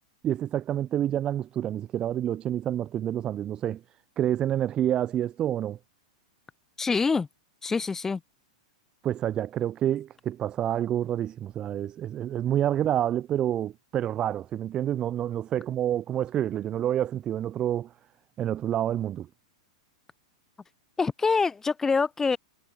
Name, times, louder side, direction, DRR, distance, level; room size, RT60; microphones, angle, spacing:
voice 1, 0.2-3.8 4.2-5.8 9.0-17.9 18.4-19.3, right 11 dB, 25° right, 5.6 m, -28 dB
voice 2, 6.8-7.3 7.6-8.2 21.0-22.4, left 4 dB, 10° left, 7.1 m, -25 dB
figure-of-eight pair, 100°, 3 cm